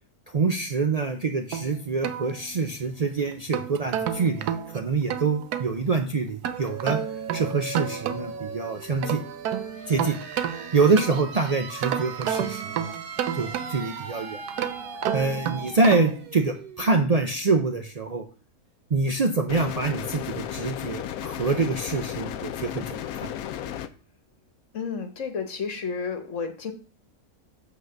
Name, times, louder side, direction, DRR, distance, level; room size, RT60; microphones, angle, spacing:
voice 1, 0.3-7.0 7.3-9.2 9.9-10.2 10.7-12.9 13.3-14.4 15.1-18.3 18.9-23.3, right 4 dB, 65° right, 5 dB, 0.3 m, -25 dB
sound 1, 1.5-2.9 3.3-5.7 6.4-8.5 8.8-11.4 11.8-14.0 14.5-16.2, right 9 dB, 90° right, 1.3 m, -31 dB
sound 2, 6.5-18.0, right 5 dB, 45° right, 0.8 m, -39 dB
sound 3, 19.5-23.9, left 10 dB, 75° left, 1.0 m, -34 dB
voice 2, 24.7-26.7, left 5 dB, 55° left, 6 dB, 1.4 m, -31 dB
8.1 x 4.1 x 6.5 m, 0.40 s
omnidirectional pair, 1.6 m